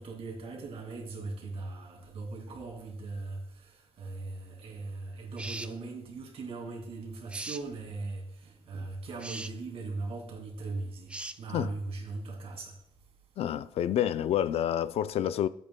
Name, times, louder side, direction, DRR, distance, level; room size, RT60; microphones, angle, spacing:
voice 1, 0.0-11.1 11.4-12.7, right 3 dB, 75° right, 2.3 m, -39 dB
sound 1, 5.4-5.7 7.3-7.6 9.2-9.5 11.1-11.4, right 2 dB, 10° right, 0.4 m, -39 dB
voice 2, 13.4-15.5, left 10 dB, 85° left, 0.4 m, -28 dB
12.5 x 8.3 x 2.2 m
cardioid pair, 135°, 10 cm